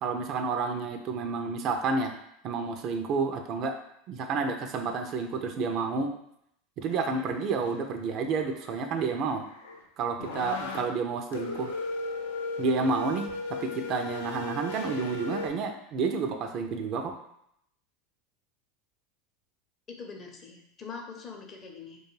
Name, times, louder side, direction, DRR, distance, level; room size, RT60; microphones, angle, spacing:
voice 1, 0.0-2.2 2.4-3.7 4.1-6.1 6.8-9.5 10.0-11.7 12.6-17.1, right 4 dB, 50° right, 5 dB, 0.3 m, -30 dB
sound 1, 6.9-7.2 7.7-7.9 8.3-9.8 10.2-10.8 11.3-15.5, left 3 dB, 85° left, 0.4 m, -37 dB
voice 2, 19.9-22.0, left 5 dB, 35° left, 1 dB, 0.6 m, -43 dB
2.3 x 2.2 x 3.1 m, 0.73 s
hypercardioid pair, 95°, 0 cm